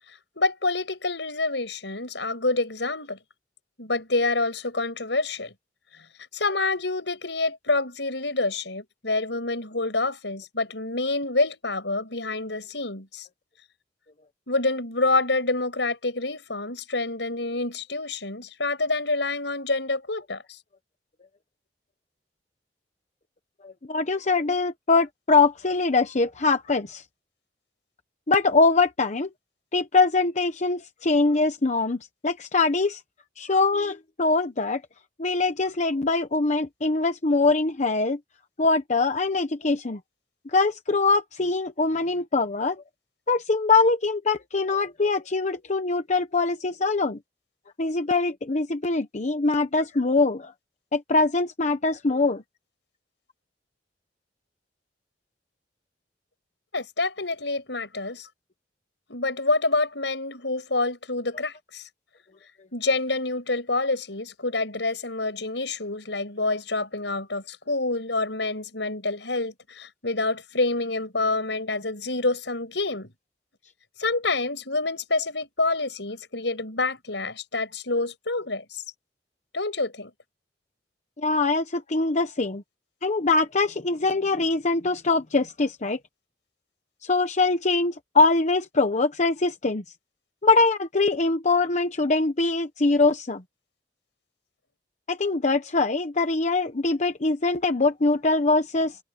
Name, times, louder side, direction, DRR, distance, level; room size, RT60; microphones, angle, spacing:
voice 1, 0.4-3.2 3.8-5.5 6.3-13.3 14.5-20.6 56.7-58.3 59.1-61.9 62.7-73.1 74.0-78.8 79.5-80.1, left 3 dB, 80° left, 6.9 m, -27 dB
voice 2, 23.6-27.0 28.3-29.3 29.7-33.0 33.4-34.8 35.2-38.2 38.6-40.0 40.5-42.8 43.3-47.2 47.8-50.5 50.9-52.4 81.2-82.6 83.0-86.0 87.0-89.8 90.4-93.4 95.1-99.0, left 3 dB, 40° left, 0.9 m, -23 dB
head